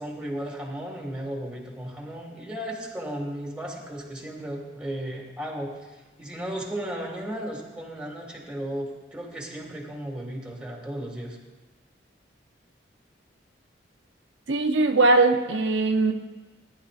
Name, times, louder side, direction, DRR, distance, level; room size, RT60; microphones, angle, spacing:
voice 1, 0.0-11.4, right 1 dB, 5° right, -1 dB, 2.1 m, -35 dB
voice 2, 14.5-16.1, right 3 dB, 85° right, 4 dB, 0.7 m, -20 dB
19.0 x 10.5 x 2.5 m, 1.2 s
head